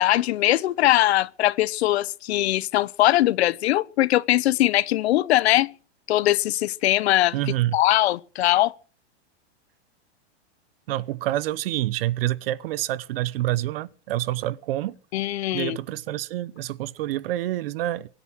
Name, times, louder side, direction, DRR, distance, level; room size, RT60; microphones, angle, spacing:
voice 1, 0.0-5.7 6.1-7.3 7.7-8.7 15.1-15.8, left 15 dB, 70° left, 1.0 m, -21 dB
voice 2, 7.3-7.8 10.9-15.0 15.5-18.1, right 15 dB, 55° right, 0.9 m, -27 dB
23.0 x 9.9 x 6.2 m
supercardioid pair, 165°, 34 cm